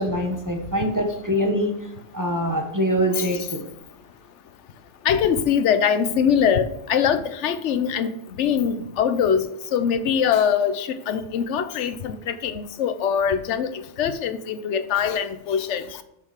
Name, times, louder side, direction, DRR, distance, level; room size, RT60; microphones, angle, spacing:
voice 1, 0.0-1.8 2.1-3.7, equal, 20° right, 2 dB, 0.8 m, -24 dB
voice 2, 5.0-15.8, left 7 dB, 80° left, 11 dB, 1.0 m, -23 dB
6.7 x 6.5 x 4.8 m, 0.83 s
omnidirectional pair, 1.2 m